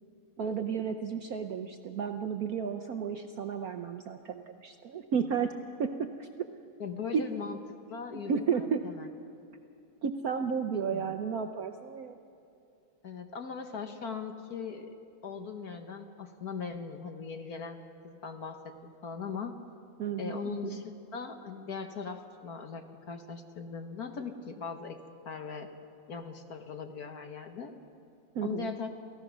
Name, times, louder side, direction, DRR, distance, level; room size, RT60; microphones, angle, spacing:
voice 1, 0.4-5.5 5.8-6.3 7.1-7.2 8.3-8.9 10.0-12.2 20.0-20.8 28.3-28.7, right 6 dB, 60° right, 6 dB, 1.0 m, -32 dB
voice 2, 6.8-7.6 7.9-9.1 10.7-11.2 13.0-14.9 15.2-19.6 20.2-25.0 25.2-25.7 26.1-27.7 28.4-28.9, left 5 dB, 50° left, 6 dB, 1.5 m, -39 dB
29.0 x 16.0 x 6.2 m, 2.7 s
omnidirectional pair, 2.2 m